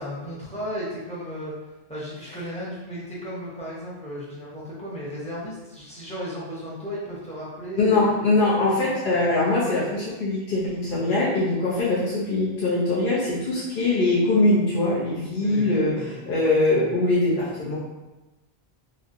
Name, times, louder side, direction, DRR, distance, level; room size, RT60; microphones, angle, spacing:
voice 1, 0.0-1.5 1.9-8.1 8.7-8.9 15.4-16.3, equal, 5° left, -8 dB, 0.8 m, -35 dB
voice 2, 7.8-17.7, left 2 dB, 60° left, -8 dB, 0.8 m, -22 dB
3.0 x 2.5 x 2.6 m, 1.1 s
omnidirectional pair, 1.1 m